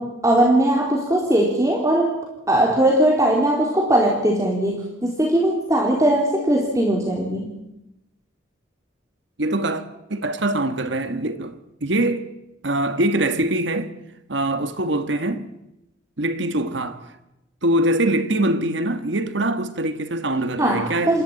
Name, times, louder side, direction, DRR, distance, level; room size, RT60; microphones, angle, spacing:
voice 1, 0.0-7.5 20.6-21.2, right 1 dB, 15° right, 3.5 m, -20 dB
voice 2, 9.4-9.8 10.1-11.5 11.8-12.3 12.6-13.9 14.3-15.5 16.2-17.0 17.6-21.2, right 1 dB, 65° right, 1.5 m, -23 dB
27.5 x 14.0 x 8.8 m
head